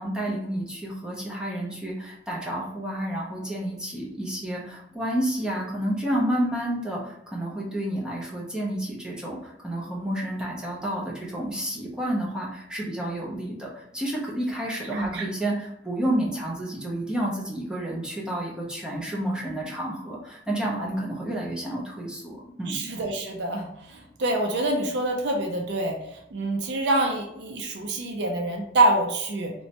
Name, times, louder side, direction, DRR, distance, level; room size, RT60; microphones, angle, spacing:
voice 1, 0.0-22.9, right 1 dB, 5° right, -4 dB, 0.5 m, -30 dB
voice 2, 14.9-15.3 20.8-20.9 22.7-29.5, right 2 dB, 65° right, 2 dB, 0.4 m, -26 dB
3.0 x 2.1 x 2.8 m, 0.78 s
head